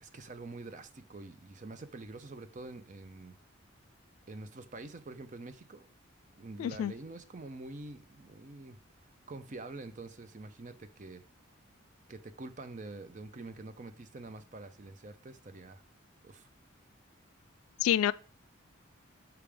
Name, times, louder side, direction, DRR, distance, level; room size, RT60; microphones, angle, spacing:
voice 1, 0.0-3.3 4.3-5.9 6.4-8.8 9.3-11.2 12.1-15.8 16.2-16.5, right 2 dB, 35° right, 0.5 m, -46 dB
voice 2, 6.6-6.9 17.8-18.1, left 10 dB, 85° left, 0.3 m, -27 dB
5.9 x 5.0 x 3.4 m
head